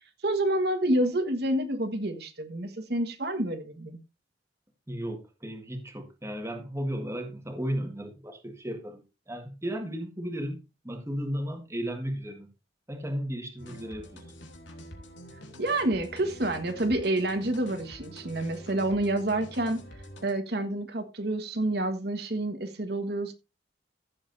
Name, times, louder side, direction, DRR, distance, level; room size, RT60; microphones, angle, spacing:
voice 1, 0.2-4.0 15.6-19.8 20.2-23.3, right 1 dB, 60° right, 1.5 m, -28 dB
voice 2, 4.9-12.5 12.9-14.3, equal, 15° right, 1.8 m, -35 dB
sound 1, 13.6-20.3, equal, 85° left, 3.0 m, -46 dB
15.5 x 7.6 x 2.7 m
head